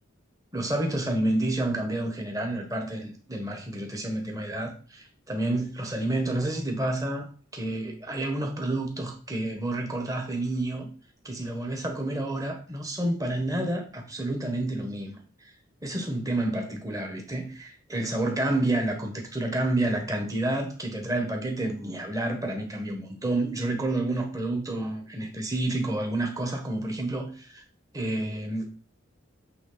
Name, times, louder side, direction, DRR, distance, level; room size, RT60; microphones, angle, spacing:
voice 1, 0.5-7.3 7.5-10.9 11.2-15.2 15.8-27.6 27.9-28.6, right 1 dB, 15° right, 1.2 m, -29 dB
8.3 x 3.6 x 3.9 m
head